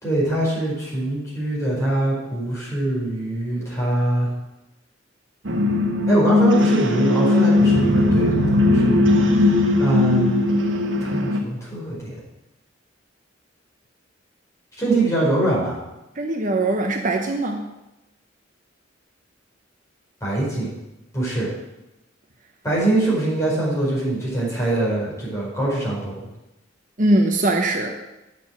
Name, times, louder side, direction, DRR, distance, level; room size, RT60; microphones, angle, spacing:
voice 1, 0.0-4.3 6.1-8.3 8.6-9.5 9.8-10.5 11.0-12.2 14.8-15.8 20.2-20.7 21.1-21.5 22.6-26.3, right 2 dB, 15° left, -6 dB, 5.0 m, -23 dB
sound 1, 5.4-11.4, left 2 dB, 80° right, 1.3 m, -18 dB
voice 2, 16.2-17.6 27.0-27.9, right 2 dB, 40° right, 3 dB, 0.9 m, -21 dB
9.3 x 6.9 x 7.5 m, 0.97 s
head